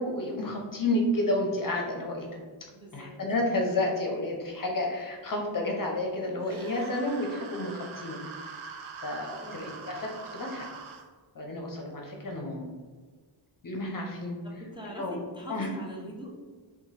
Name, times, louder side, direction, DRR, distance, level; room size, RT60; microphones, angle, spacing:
voice 1, 0.0-2.4 2.9-10.7 11.3-12.7 13.6-14.4 14.8-15.7, left 1 dB, 40° left, 0 dB, 0.8 m, -31 dB
voice 2, 2.7-3.2 9.4-9.7 14.4-16.3, equal, 10° right, -4 dB, 0.7 m, -42 dB
sound 1, 6.4-11.0, right 5 dB, 75° right, 0.6 m, -43 dB
2.9 x 2.3 x 4.0 m, 1.5 s
cardioid pair, 60°, 49 cm